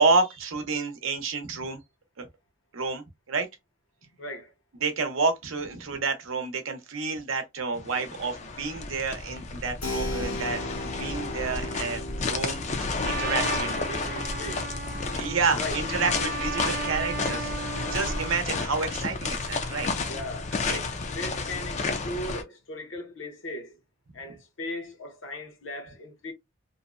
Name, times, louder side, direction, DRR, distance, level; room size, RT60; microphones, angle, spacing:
voice 1, 0.0-1.8 2.2-2.3 2.7-3.5 4.8-12.0 12.3-13.8 15.1-19.9 20.7-20.8, right 4 dB, 80° right, 0.7 m, -29 dB
voice 2, 4.2-4.5 13.3-14.7 15.5-15.8 20.1-23.8 24.1-26.3, left 1 dB, 70° left, 0.8 m, -38 dB
sound 1, 7.8-22.4, left 3 dB, 35° left, 0.4 m, -31 dB
Keyboard (musical), 9.8-18.2, left 2 dB, 85° left, 1.2 m, -39 dB
Trumpet, 13.0-18.4, right 3 dB, 45° right, 0.4 m, -35 dB
2.7 x 2.1 x 2.4 m
head